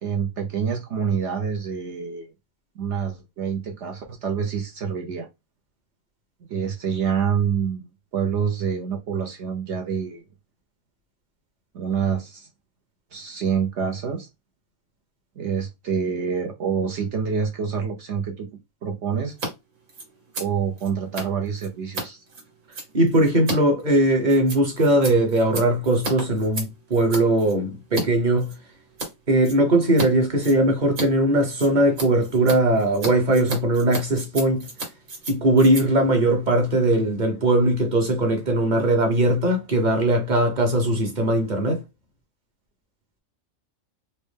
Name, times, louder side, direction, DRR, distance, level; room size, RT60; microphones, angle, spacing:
voice 1, 0.0-2.3 2.8-5.3 6.5-7.8 8.1-10.2 11.7-12.5 13.1-14.3 15.4-18.5 18.8-19.4 20.4-22.2, right 7 dB, 60° right, 0.9 m, -27 dB
Scissors, 19.3-19.5 19.8-28.1 28.4-29.1 29.4-30.1 30.3-37.1, right 2 dB, 75° right, 1.8 m, -34 dB
voice 2, 22.9-28.5 29.3-34.7 35.3-41.8, right 1 dB, 35° right, 0.9 m, -20 dB
4.1 x 2.1 x 3.3 m
omnidirectional pair, 1.5 m